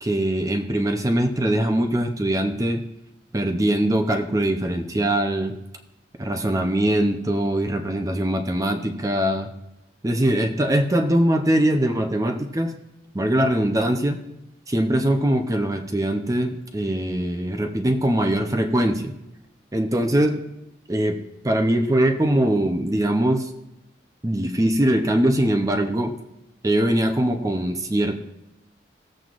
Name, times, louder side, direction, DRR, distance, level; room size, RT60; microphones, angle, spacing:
voice 1, 0.0-2.8 3.3-5.6 6.2-9.5 10.0-12.7 13.1-14.2 14.7-19.1 19.7-20.4 20.9-21.2 21.4-23.5 24.2-26.1 26.6-28.2, right 1 dB, 20° right, 5 dB, 0.6 m, -22 dB
16.5 x 7.7 x 2.5 m, 0.86 s
head